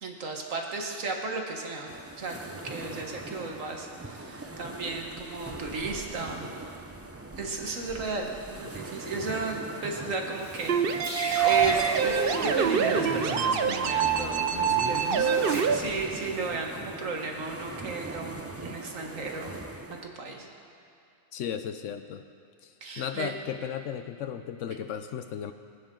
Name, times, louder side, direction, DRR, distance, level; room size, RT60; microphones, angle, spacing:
voice 1, 0.0-6.5 7.4-19.6 20.0-20.5 22.8-23.3, right 3 dB, 85° right, 1 dB, 1.9 m, -34 dB
sound 1, 1.9-20.1, right 2 dB, 25° right, 0.3 m, -41 dB
sound 2, 10.3-15.6, equal, 15° left, 2.0 m, -35 dB
sound 3, 10.7-15.7, right 7 dB, 55° right, 0.7 m, -25 dB
voice 2, 21.3-22.2 22.6-25.5, left 8 dB, 75° left, 8 dB, 0.9 m, -35 dB
24.0 x 9.7 x 3.8 m, 2.5 s
omnidirectional pair, 1.3 m